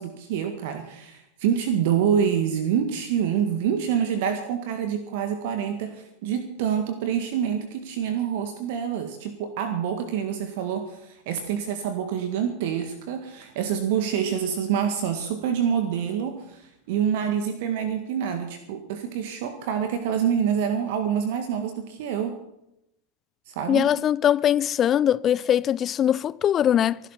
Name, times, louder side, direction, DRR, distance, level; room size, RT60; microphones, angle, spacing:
voice 1, 0.0-22.4 23.5-23.9, right 8 dB, 55° right, 1.8 m, -26 dB
voice 2, 23.7-27.0, left 10 dB, 30° left, 0.5 m, -21 dB
24.5 x 12.0 x 4.2 m
figure-of-eight pair, 85°, 0 cm